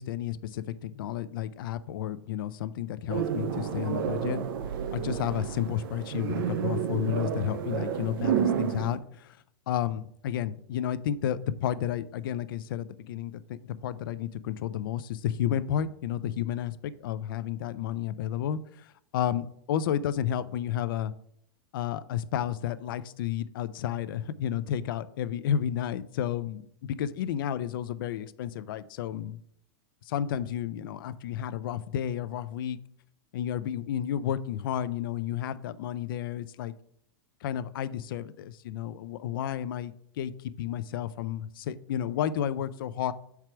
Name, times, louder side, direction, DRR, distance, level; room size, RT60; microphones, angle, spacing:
voice 1, 0.0-4.4 4.9-9.4 9.7-21.1 21.7-29.4 30.1-32.8 33.3-36.7 37.4-40.3 40.6-43.1, left 10 dB, 60° left, 15 dB, 0.4 m, -32 dB
sound 1, 3.1-9.0, right 8 dB, 55° right, 0.6 m, -30 dB
4.6 x 4.5 x 6.0 m, 0.68 s
supercardioid pair, 175°, 13 cm